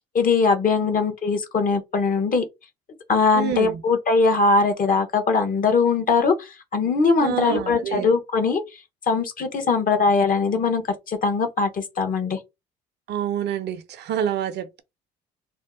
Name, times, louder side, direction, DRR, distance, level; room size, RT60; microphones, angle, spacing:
voice 1, 0.1-2.4 3.1-8.6 9.1-12.4, left 4 dB, 45° left, 0.9 m, -21 dB
voice 2, 3.3-3.8 7.2-8.1 9.6-9.8 13.1-14.8, right 10 dB, 60° right, 0.6 m, -27 dB
2.7 x 2.1 x 3.6 m
supercardioid pair, 70°, 20 cm